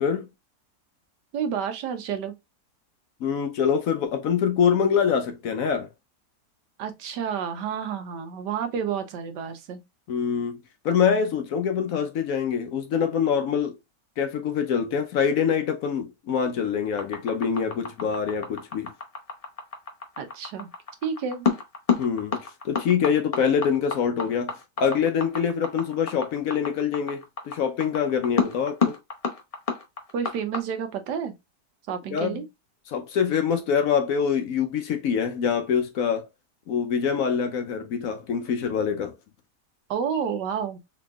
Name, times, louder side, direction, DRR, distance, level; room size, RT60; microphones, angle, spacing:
voice 1, 1.3-2.3 6.8-9.8 20.2-20.7 21.0-21.5 30.1-31.3 31.9-32.4 39.9-40.8, right 7 dB, 85° right, 1.4 m, -30 dB
voice 2, 3.2-5.9 10.1-13.8 14.2-18.9 22.0-22.4 22.6-28.9 32.1-32.4 32.9-36.3 36.7-39.1, left 7 dB, 65° left, 0.9 m, -25 dB
sound 1, 17.0-30.6, left 5 dB, 45° left, 0.4 m, -28 dB
4.0 x 3.5 x 2.3 m
omnidirectional pair, 1.8 m